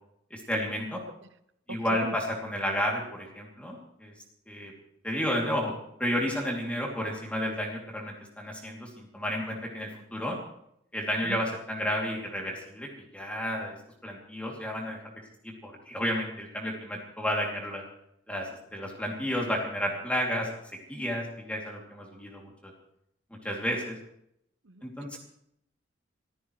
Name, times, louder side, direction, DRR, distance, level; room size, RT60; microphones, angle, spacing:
voice 1, 0.3-1.0 1.7-4.1 4.5-4.7 5.0-5.7 6.0-10.4 10.9-13.8 14.0-15.0 15.4-17.8 18.3-20.5 20.9-22.5 23.4-23.9 24.8-25.2, equal, 5° left, -1 dB, 2.7 m, -31 dB
voice 2, 1.7-2.2 11.2-11.4 24.7-24.8, right 2 dB, 65° right, 12 dB, 0.9 m, -39 dB
25.5 x 15.0 x 3.2 m, 0.75 s
head